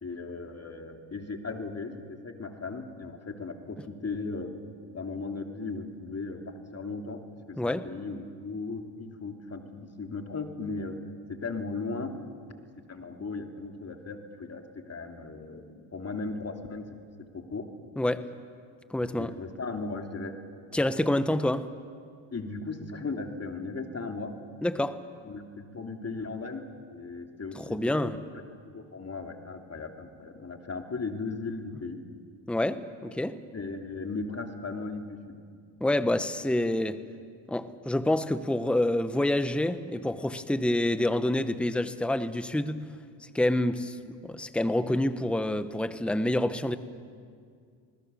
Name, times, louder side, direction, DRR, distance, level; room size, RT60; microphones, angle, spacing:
voice 1, 0.0-4.5 4.9-7.2 7.5-11.0 11.3-12.2 12.9-16.8 17.3-17.7 19.0-20.3 22.3-24.3 25.2-28.2 28.7-32.0 33.5-35.4, left 3 dB, 30° left, 4 dB, 3.0 m, -37 dB
voice 2, 7.6-7.9 18.0-18.2 18.9-19.3 20.7-21.6 24.6-25.0 27.6-28.2 32.5-33.4 35.8-37.0 37.5-42.8 43.3-44.0 44.2-46.8, left 1 dB, ahead, 11 dB, 1.1 m, -27 dB
27.5 x 20.5 x 7.0 m, 2.2 s
supercardioid pair, 75°, 48 cm